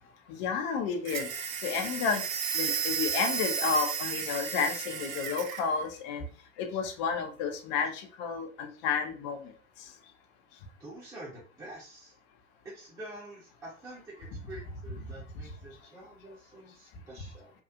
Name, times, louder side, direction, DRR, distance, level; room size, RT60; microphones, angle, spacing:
voice 1, 0.3-1.3 1.6-2.2 2.5-6.2 6.6-9.4, left 5 dB, 30° left, 6 dB, 0.4 m, -31 dB
sound 1, 1.0-5.7, right 7 dB, 75° right, 0.5 m, -33 dB
voice 2, 10.8-12.1 12.6-17.5, right 1 dB, 10° right, -7 dB, 0.8 m, -47 dB
2.7 x 2.3 x 2.4 m, 0.40 s
figure-of-eight pair, 90°, 41 cm